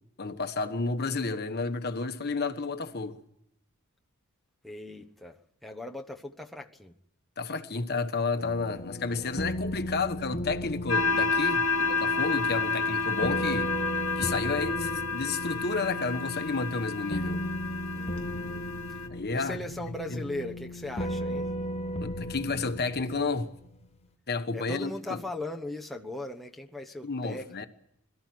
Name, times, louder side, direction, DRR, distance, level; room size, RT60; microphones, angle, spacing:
voice 1, 0.2-3.2 7.4-13.7 14.2-17.4 19.1-19.6 20.1-20.2 22.0-23.5 24.3-25.2 27.0-27.7, left 4 dB, 45° left, 1.2 m, -31 dB
voice 2, 4.6-7.0 17.9-18.7 19.3-21.5 24.5-27.7, left 1 dB, ahead, 1.1 m, -39 dB
sound 1, 8.4-23.9, equal, 30° left, 1.1 m, -36 dB
sound 2, 10.9-19.1, left 4 dB, 65° left, 1.5 m, -30 dB
22.0 x 13.5 x 9.3 m
head